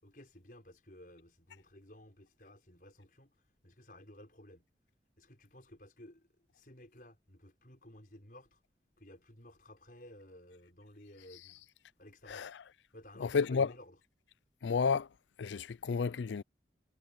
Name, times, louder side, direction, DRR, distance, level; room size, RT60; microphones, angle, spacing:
voice 1, 0.0-4.7 5.2-8.6 9.0-11.7 12.0-12.5 12.9-14.0, left 1 dB, 50° left, 6.1 m, -55 dB
voice 2, 13.2-13.7 14.6-15.1 15.4-16.4, left 5 dB, 85° left, 0.4 m, -31 dB
head